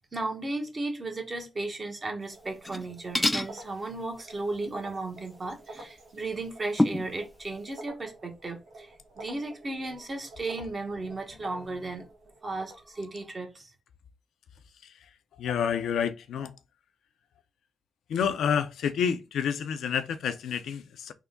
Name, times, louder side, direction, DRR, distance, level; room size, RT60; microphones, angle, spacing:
voice 1, 0.1-8.9 9.2-12.1 12.4-13.7, right 2 dB, 40° right, 1.1 m, -35 dB
sound 1, 2.3-13.2, right 2 dB, 85° right, 0.9 m, -49 dB
sound 2, 2.5-2.9 3.2-3.5 5.8-5.9 6.8-7.1, left 1 dB, 15° left, 0.3 m, -26 dB
voice 2, 15.3-16.5 18.1-21.1, left 7 dB, 85° left, 0.4 m, -29 dB
3.5 x 2.1 x 3.7 m
cardioid pair, 60°, 0 cm